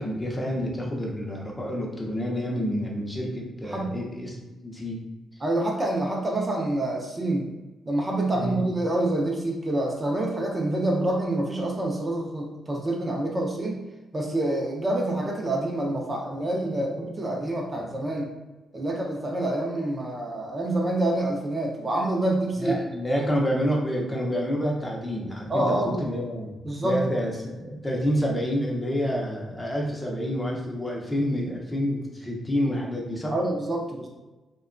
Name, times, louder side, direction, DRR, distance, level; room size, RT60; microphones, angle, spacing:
voice 1, 0.0-5.0 8.3-8.6 22.6-26.5 26.8-33.3, equal, 15° left, -2 dB, 0.7 m, -28 dB
voice 2, 5.4-7.5 7.9-13.8 14.1-18.3 18.7-22.8 25.5-26.0 26.6-27.0 33.3-34.1, right 1 dB, 30° right, -1 dB, 0.6 m, -27 dB
2.7 x 2.2 x 2.5 m, 1.1 s
cardioid pair, 75°, 0 cm